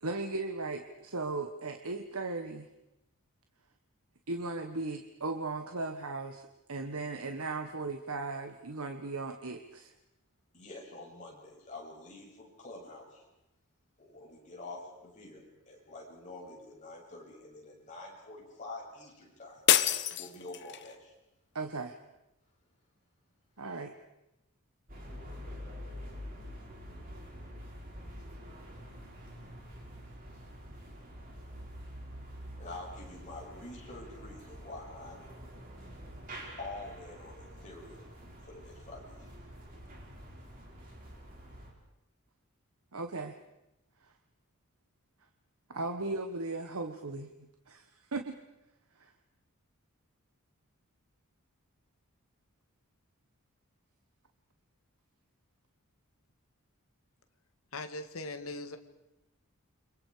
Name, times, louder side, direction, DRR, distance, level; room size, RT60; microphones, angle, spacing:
voice 1, 0.0-2.7 4.3-9.9 21.5-22.0 23.6-23.9 42.9-43.4 45.7-47.9 48.1-48.4, right 3 dB, 80° right, 6 dB, 1.4 m, -37 dB
voice 2, 10.5-13.2 14.0-19.6 20.2-21.1 32.6-35.2 36.6-38.1 38.5-39.3, left 2 dB, 35° left, -2 dB, 7.6 m, -47 dB
sound 1, 19.7-20.9, left 11 dB, 50° left, 1.1 m, -27 dB
sound 2, 24.9-41.7, equal, 40° right, 6.0 m, -47 dB
voice 3, 57.7-58.8, left 2 dB, 70° left, 7 dB, 1.9 m, -40 dB
29.5 x 26.5 x 5.1 m, 0.91 s
head